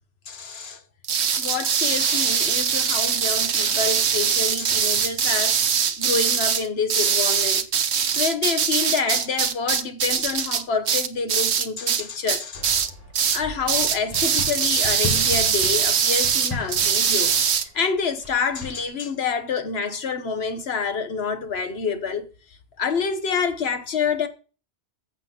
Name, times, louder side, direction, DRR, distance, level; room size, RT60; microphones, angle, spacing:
voice 1, 0.3-0.8 1.4-7.7 8.2-12.8 13.3-17.3 17.7-22.3 22.8-24.3, left 5 dB, 65° left, 1.3 m, -27 dB
sound 1, 1.0-12.0 12.3-12.9 13.1-13.4 13.7-17.6, right 7 dB, 70° right, 1.1 m, -22 dB
sound 2, 12.5-18.9, left 2 dB, 15° left, 6.1 m, -36 dB
14.5 x 7.9 x 3.0 m
omnidirectional pair, 1.2 m